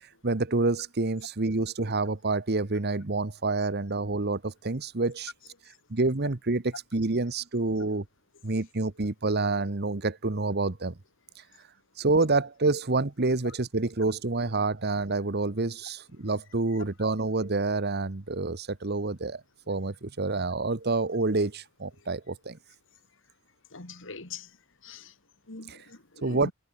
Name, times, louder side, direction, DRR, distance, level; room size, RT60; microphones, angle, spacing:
voice 1, 0.2-5.3 5.9-8.0 8.4-10.9 12.0-19.4 19.7-22.6 25.7-25.8 26.2-26.5, right 3 dB, 50° right, 1.2 m, -28 dB
voice 2, 23.7-24.5 24.8-25.1 25.5-26.5, left 3 dB, 60° left, 3.4 m, -42 dB
head